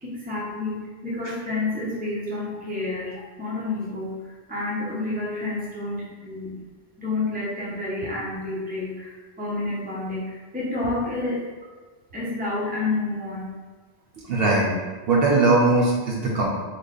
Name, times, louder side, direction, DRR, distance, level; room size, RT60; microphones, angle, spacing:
voice 1, 0.0-6.5 7.0-11.5 12.1-13.5, left 2 dB, 10° right, -6 dB, 0.6 m, -29 dB
voice 2, 14.3-14.7 15.1-16.4, right 2 dB, 65° right, -3 dB, 0.8 m, -19 dB
3.2 x 2.4 x 3.8 m, 1.4 s
omnidirectional pair, 1.1 m